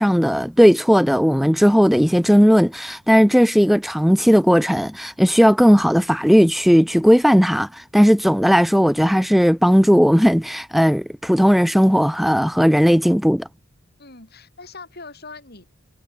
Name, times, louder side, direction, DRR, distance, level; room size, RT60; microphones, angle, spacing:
voice 1, 0.0-13.5, equal, ahead, 0.6 m, -16 dB
voice 2, 14.0-15.7, left 3 dB, 45° left, 6.0 m, -41 dB
head